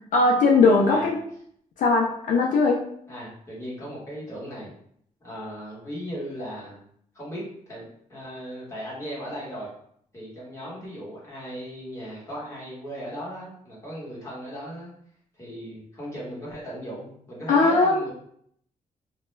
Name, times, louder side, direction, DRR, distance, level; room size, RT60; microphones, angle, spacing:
voice 1, 0.1-1.2 1.8-2.8 17.5-18.0, left 3 dB, 65° left, -1 dB, 0.4 m, -19 dB
voice 2, 0.8-1.1 3.1-4.7 5.2-6.8 7.1-9.7 10.1-14.9 15.3-18.1, equal, 20° left, -6 dB, 1.0 m, -37 dB
2.2 x 2.1 x 3.0 m, 0.67 s
wide cardioid pair, 155°, 14 cm